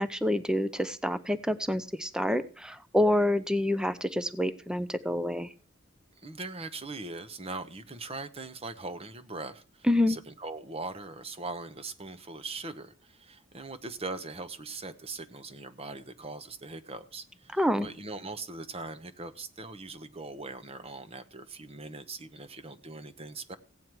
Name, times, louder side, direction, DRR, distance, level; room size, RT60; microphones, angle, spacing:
voice 1, 0.0-5.5 9.9-10.2 17.5-17.9, left 1 dB, 5° right, 13 dB, 0.6 m, -27 dB
voice 2, 6.2-23.6, right 3 dB, 30° right, 11 dB, 0.9 m, -41 dB
16.0 x 9.2 x 4.6 m, 0.40 s
head